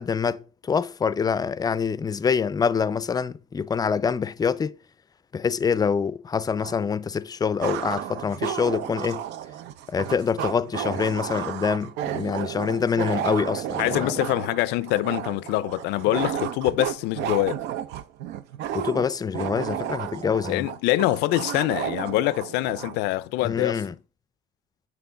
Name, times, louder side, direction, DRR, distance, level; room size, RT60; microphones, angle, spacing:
voice 1, 0.0-4.7 5.3-9.2 9.9-14.1 18.7-20.7 23.4-23.9, left 6 dB, 25° left, 0.4 m, -25 dB
sound 1, 6.6-6.7 7.6-23.0, right 10 dB, 90° right, 0.5 m, -32 dB
voice 2, 13.8-17.6 20.5-23.8, left 17 dB, 85° left, 0.4 m, -24 dB
6.9 x 3.6 x 5.6 m
cardioid pair, 110°, 17 cm